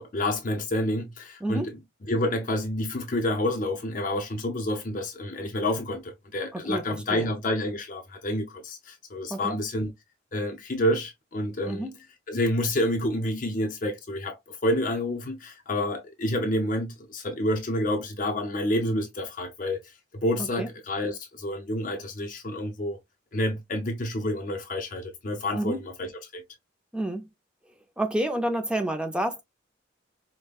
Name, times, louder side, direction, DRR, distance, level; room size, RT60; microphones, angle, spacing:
voice 1, 0.0-1.7 2.1-9.9 10.3-11.9 12.3-23.0 23.3-26.4, left 1 dB, 45° left, 0.6 m, -29 dB
voice 2, 1.4-1.7 6.5-7.3 9.3-9.6 11.7-11.9 20.6-20.7 25.5-25.8 26.9-27.3 28.0-29.4, right 1 dB, 5° right, 0.4 m, -29 dB
5.0 x 2.1 x 2.3 m
head